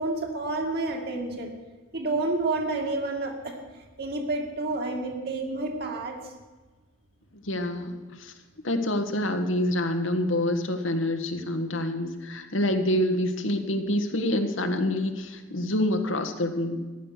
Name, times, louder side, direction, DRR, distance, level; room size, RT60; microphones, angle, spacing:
voice 1, 0.0-1.5 1.9-3.6 4.0-6.3, right 2 dB, 55° right, 2 dB, 2.3 m, -29 dB
voice 2, 7.4-8.3 8.6-16.8, left 1 dB, 85° left, 6 dB, 1.6 m, -27 dB
15.0 x 11.0 x 6.7 m, 1.3 s
head